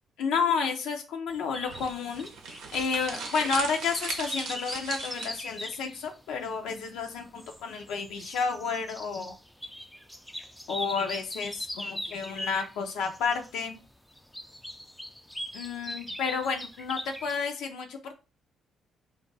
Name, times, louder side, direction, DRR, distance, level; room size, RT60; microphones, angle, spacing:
voice 1, 0.2-2.3 2.7-9.4 10.7-13.8 15.5-18.2, left 5 dB, 90° left, 3 dB, 0.5 m, -31 dB
sound 1, 1.3-17.3, equal, 5° left, 0.3 m, -41 dB
sound 2, 1.7-5.6, right 4 dB, 85° right, 0.7 m, -38 dB
2.4 x 2.2 x 3.8 m, 0.31 s
cardioid pair, 90°, 0 cm